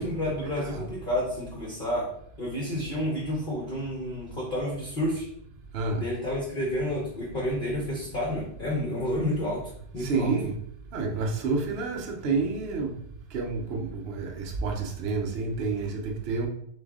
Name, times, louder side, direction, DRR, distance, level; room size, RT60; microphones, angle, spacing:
voice 1, 0.0-2.1 2.4-5.3 5.9-10.3, left 1 dB, 40° left, -3 dB, 0.8 m, -30 dB
voice 2, 10.0-10.5 10.9-12.9 13.3-16.5, right 4 dB, 55° right, 1 dB, 0.7 m, -29 dB
3.7 x 3.4 x 3.6 m, 0.69 s
omnidirectional pair, 1.9 m